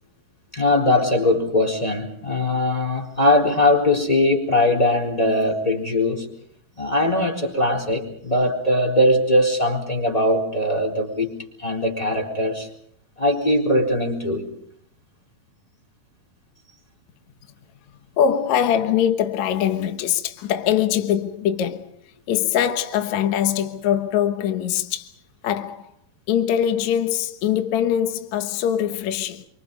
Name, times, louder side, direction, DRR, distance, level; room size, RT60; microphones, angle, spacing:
voice 1, 0.5-6.3 6.8-11.3 11.6-12.7 13.2-14.5, left 1 dB, 10° left, 3.8 m, -20 dB
voice 2, 18.2-21.9 22.3-25.1 25.4-25.9 26.3-29.5, left 9 dB, 60° left, 2.1 m, -22 dB
28.0 x 24.5 x 5.3 m
omnidirectional pair, 4.2 m